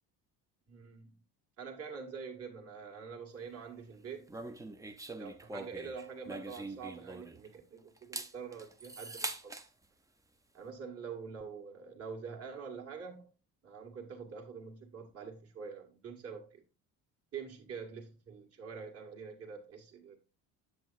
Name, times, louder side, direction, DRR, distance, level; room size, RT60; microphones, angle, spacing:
voice 1, 0.7-1.2 1.6-4.3 5.1-9.5 10.5-13.3 13.6-16.6 17.3-20.2, right 5 dB, 40° right, 1.6 m, -45 dB
sound 1, 4.3-7.5 8.0-9.7, right 2 dB, 10° right, 0.5 m, -43 dB
7.7 x 7.1 x 2.4 m
supercardioid pair, 90°, 38 cm